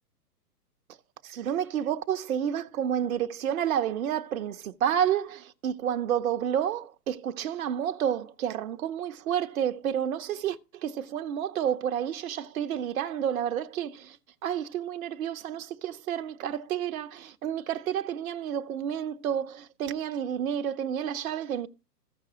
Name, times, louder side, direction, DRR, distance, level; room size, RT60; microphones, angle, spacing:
voice 1, 1.2-14.2 14.4-21.7, right 9 dB, 55° right, 0.8 m, -30 dB
15.0 x 5.9 x 2.9 m
hypercardioid pair, 130°, 49 cm